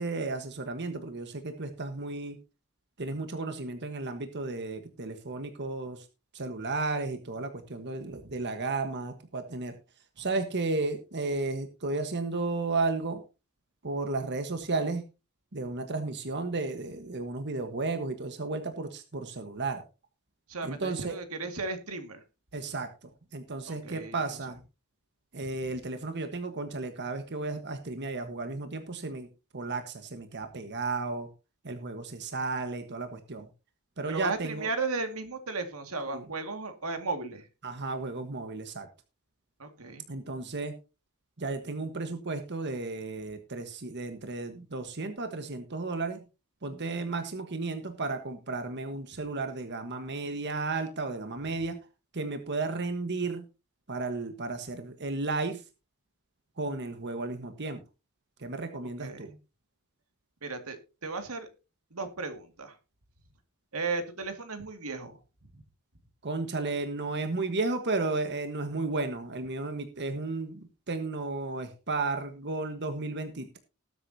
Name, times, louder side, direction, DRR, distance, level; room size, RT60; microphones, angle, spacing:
voice 1, 0.0-2.4 3.0-6.1 6.3-9.8 10.2-13.2 13.8-15.0 15.5-19.8 20.6-21.2 22.5-24.6 25.3-29.3 29.5-31.3 31.6-33.5 34.0-34.7 36.1-36.2 37.6-38.9 40.1-40.7 41.4-46.2 46.6-51.8 52.1-53.5 53.9-55.6 56.6-57.8 58.4-59.3 66.2-73.6, right 3 dB, 55° right, 7 dB, 1.4 m, -33 dB
voice 2, 20.5-22.2 23.7-24.2 34.1-37.5 39.6-40.0 59.0-59.4 60.4-61.5 61.9-62.8 63.7-65.2, right 3 dB, 85° right, 7 dB, 2.2 m, -35 dB
19.5 x 8.1 x 2.8 m, 0.30 s
head